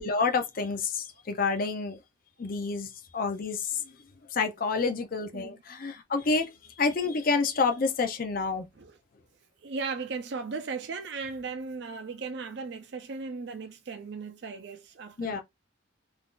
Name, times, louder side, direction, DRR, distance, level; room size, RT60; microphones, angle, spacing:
voice 1, 0.0-2.0 2.4-3.8 4.3-6.5 6.8-8.7 15.2-15.4, left 4 dB, 45° left, 0.4 m, -28 dB
voice 2, 9.6-15.4, right 4 dB, 55° right, 0.4 m, -37 dB
2.5 x 2.3 x 3.6 m
head